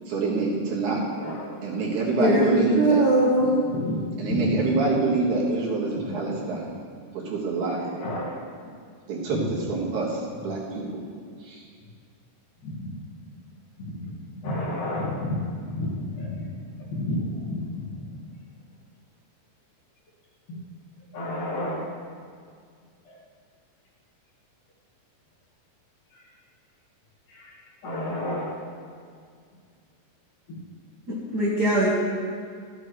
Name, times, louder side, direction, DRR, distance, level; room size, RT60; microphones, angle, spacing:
voice 1, 0.1-1.0 1.6-3.0 4.2-6.7 7.2-7.9 9.1-9.4 9.7-11.0 11.4-11.6, right 3 dB, 75° right, -4 dB, 3.1 m, -26 dB
voice 2, 1.1-1.7 3.4-4.6 6.0-6.1 7.8-8.5 9.3-9.5 12.6-13.0 13.8-16.5 16.8-17.7 20.5-20.6 21.1-21.9 23.0-23.2 26.1-26.2 27.3-27.6 27.8-28.6 30.5-30.6, left 1 dB, 80° left, -5 dB, 3.5 m, -31 dB
voice 3, 2.2-3.7 31.1-31.9, right 1 dB, 50° right, -7 dB, 1.2 m, -21 dB
14.0 x 8.7 x 3.2 m, 2.1 s
omnidirectional pair, 3.6 m